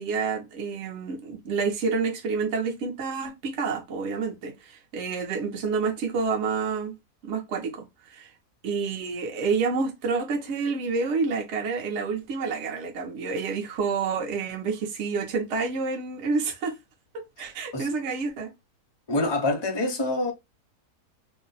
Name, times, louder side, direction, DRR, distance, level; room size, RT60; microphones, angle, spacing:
voice 1, 0.0-6.9 7.2-7.9 8.1-8.3 8.6-16.8 17.4-18.5, right 4 dB, 55° right, 0.9 m, -28 dB
voice 2, 19.1-20.3, left 2 dB, 35° left, 0.4 m, -26 dB
2.8 x 2.1 x 3.9 m
omnidirectional pair, 1.7 m